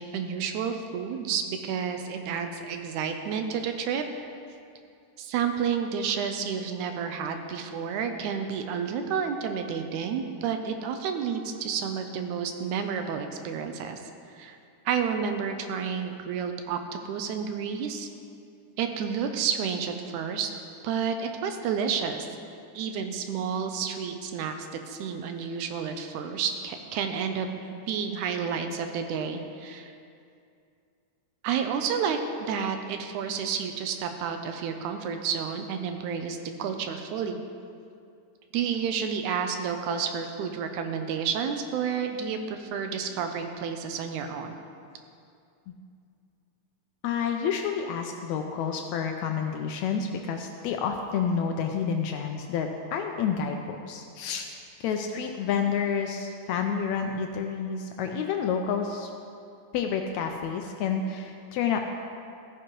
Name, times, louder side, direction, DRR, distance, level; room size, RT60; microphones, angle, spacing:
voice 1, 0.0-4.1 5.2-14.0 14.3-14.6 14.9-18.1 18.8-20.5 20.8-22.3 22.7-29.9 31.4-37.4 38.5-44.6, right 7 dB, 80° right, 6 dB, 2.0 m, -30 dB
voice 2, 47.0-54.5 54.8-59.1 59.7-61.8, left 6 dB, 80° left, 3 dB, 1.7 m, -29 dB
15.5 x 9.4 x 3.1 m, 2.4 s
omnidirectional pair, 3.6 m